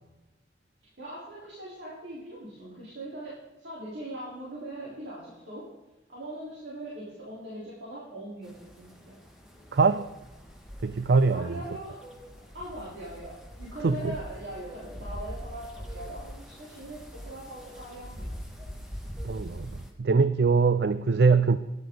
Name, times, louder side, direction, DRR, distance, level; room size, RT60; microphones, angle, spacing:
voice 1, 1.0-5.7 6.1-9.2 11.3-12.0 12.5-18.4, right 1 dB, 75° right, -7 dB, 4.0 m, -41 dB
sound 1, 8.4-19.9, equal, 5° right, 1.7 m, -43 dB
voice 2, 9.7-10.1 10.8-11.6 13.8-14.1 19.2-21.6, right 4 dB, 60° right, 12 dB, 0.4 m, -23 dB
12.5 x 10.5 x 3.9 m, 1.0 s
head